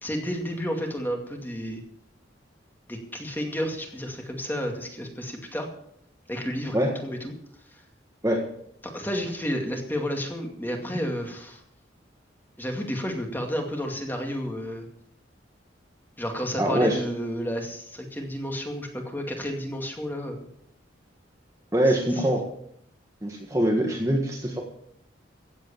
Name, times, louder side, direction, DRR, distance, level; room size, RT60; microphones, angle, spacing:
voice 1, 0.0-1.8 2.9-5.7 6.3-6.8 7.0-7.3 8.9-11.6 12.6-14.9 16.2-20.4 21.9-22.0 22.2-22.3, equal, 10° left, 2 dB, 2.3 m, -31 dB
voice 2, 16.6-17.0 21.7-22.4 23.2-24.6, right 1 dB, 15° right, 1 dB, 1.5 m, -23 dB
16.0 x 8.2 x 7.0 m, 0.71 s
head